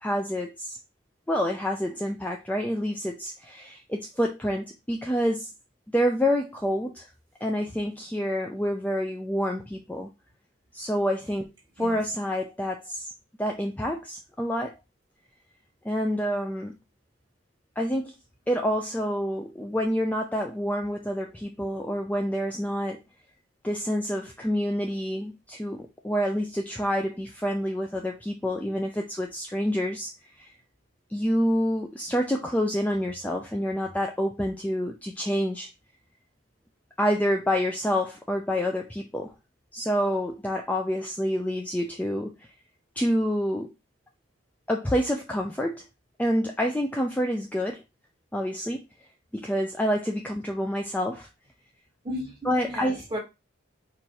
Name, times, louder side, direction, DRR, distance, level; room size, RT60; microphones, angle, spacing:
voice 1, 0.0-0.8 1.3-5.5 5.9-7.1 7.4-10.1 10.7-11.5 11.8-13.1 13.4-14.7 15.8-16.7 17.8-18.1 18.5-23.0 23.6-30.1 30.4-30.5 31.1-35.7 37.0-39.3 39.7-42.3 43.0-43.7 44.7-45.8 46.2-47.8 48.3-48.8 49.3-51.3 52.4-53.1, equal, 5° left, 0.4 m, -27 dB
voice 2, 52.0-53.2, equal, 20° right, 1.8 m, -34 dB
4.7 x 2.6 x 4.2 m
head